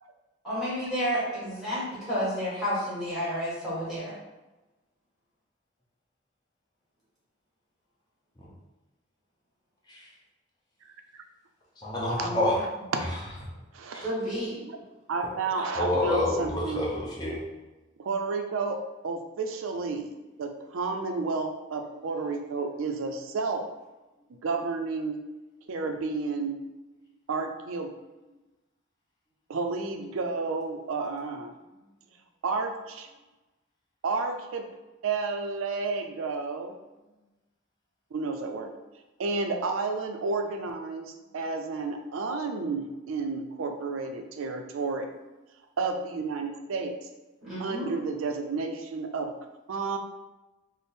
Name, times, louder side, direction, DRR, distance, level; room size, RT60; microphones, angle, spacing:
voice 1, 0.4-4.1 12.2-12.4 14.0-14.6 47.4-47.9, equal, ahead, -9 dB, 1.4 m, -31 dB
voice 2, 10.8-11.2 12.1-12.3 13.7-14.1 14.7-14.8 15.1-16.8 18.0-20.1 20.4-23.6 24.4-25.2 25.7-26.6 27.3-27.9 29.5-31.5 32.4-33.1 34.0-34.7 35.0-36.7 38.1-38.7 39.2-45.1 45.8-46.9 47.6-49.3 49.7-50.0, right 4 dB, 80° right, 5 dB, 0.4 m, -31 dB
voice 3, 11.8-12.6 13.0-13.5 15.7-17.4, left 1 dB, 20° left, -5 dB, 0.7 m, -28 dB
3.4 x 2.0 x 4.2 m, 1.1 s
head